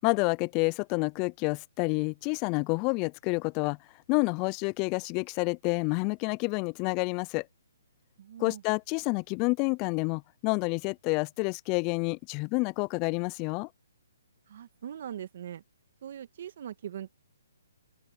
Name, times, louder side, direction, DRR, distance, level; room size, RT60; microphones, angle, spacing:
voice 1, 0.0-3.8 4.1-7.5 8.4-13.7, left 30 dB, 25° left, 0.4 m, -29 dB
voice 2, 8.2-8.6 14.5-15.6 16.0-17.2, right 10 dB, 55° right, 1.6 m, -41 dB
open air
hypercardioid pair, 145°, 0 cm